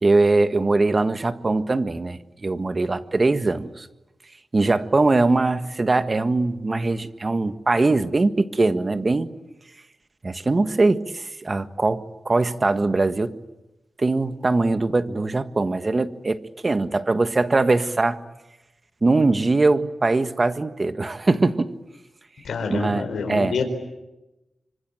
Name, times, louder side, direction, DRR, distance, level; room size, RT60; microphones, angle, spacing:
voice 1, 0.0-3.9 4.5-9.3 10.2-13.4 14.0-18.2 19.0-21.7 22.7-23.5, right 3 dB, 40° right, 11 dB, 1.5 m, -21 dB
voice 2, 22.4-23.6, left 4 dB, 85° left, 4 dB, 4.6 m, -27 dB
25.5 x 25.0 x 9.0 m, 0.98 s
cardioid pair, 65°, 0 cm